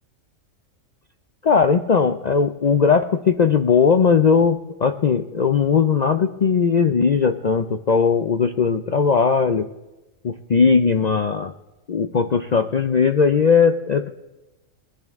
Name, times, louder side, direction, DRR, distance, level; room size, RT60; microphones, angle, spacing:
voice 1, 1.4-9.7 10.2-11.5 11.9-14.1, left 5 dB, 60° left, 8 dB, 0.4 m, -18 dB
20.5 x 10.5 x 3.6 m, 1.0 s
omnidirectional pair, 1.4 m